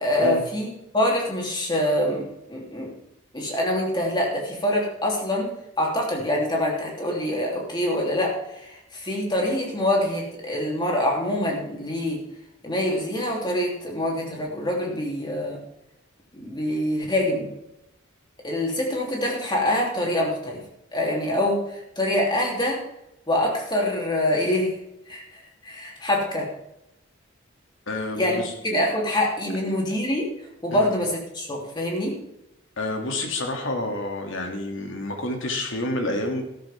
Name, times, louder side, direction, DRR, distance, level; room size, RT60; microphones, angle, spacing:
voice 1, 0.0-2.9 3.3-12.2 12.6-15.6 16.3-17.5 18.4-20.6 20.9-22.8 23.3-24.8 25.1-26.5 28.2-30.3 30.6-32.2, left 1 dB, 20° left, -1 dB, 3.3 m, -25 dB
voice 2, 27.9-28.5 30.7-30.9 32.8-36.4, left 2 dB, 65° left, 2 dB, 2.6 m, -29 dB
13.5 x 13.0 x 3.6 m, 0.85 s
head